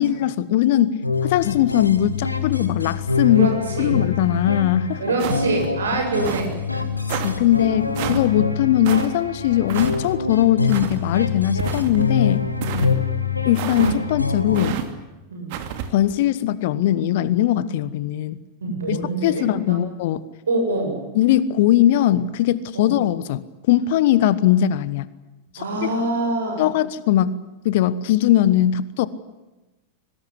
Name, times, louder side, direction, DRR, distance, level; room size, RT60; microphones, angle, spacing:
voice 1, 0.0-3.5 3.8-5.0 7.1-12.5 13.4-14.8 15.9-18.4 18.9-20.2 21.1-25.1 25.5-25.9 26.6-29.1, left 12 dB, 50° left, 17 dB, 1.3 m, -20 dB
sound 1, 1.0-14.7, left 4 dB, 85° left, 2.3 m, -25 dB
voice 2, 3.3-3.9 5.0-6.8 12.6-13.0 15.3-15.5 18.6-19.8 20.5-21.1 22.7-22.9 25.6-26.7, right 2 dB, 70° right, 4 dB, 7.6 m, -25 dB
sound 2, 5.2-5.7 6.2-6.5 7.1-7.3 8.0-8.3 8.8-9.1 9.7-10.0 10.7-11.0 11.6-12.1 12.6-12.9 13.5-14.0 14.5-14.9 15.5-15.9, right 10 dB, 50° right, 2.7 m, -29 dB
23.0 x 19.5 x 9.9 m, 1.1 s
figure-of-eight pair, 90°, 0 cm